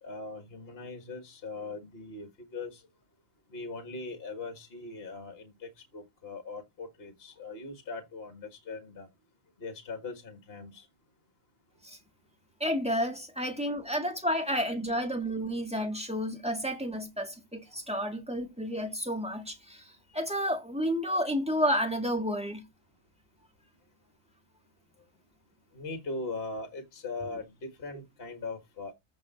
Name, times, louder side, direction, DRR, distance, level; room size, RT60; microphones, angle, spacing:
voice 1, 0.0-2.8 3.5-9.1 9.6-10.9 13.4-13.5 25.7-28.9, left 3 dB, 40° left, 1.8 m, -40 dB
voice 2, 12.6-19.8 20.1-22.6, equal, 5° right, 1.6 m, -31 dB
14.5 x 5.3 x 4.0 m
omnidirectional pair, 1.7 m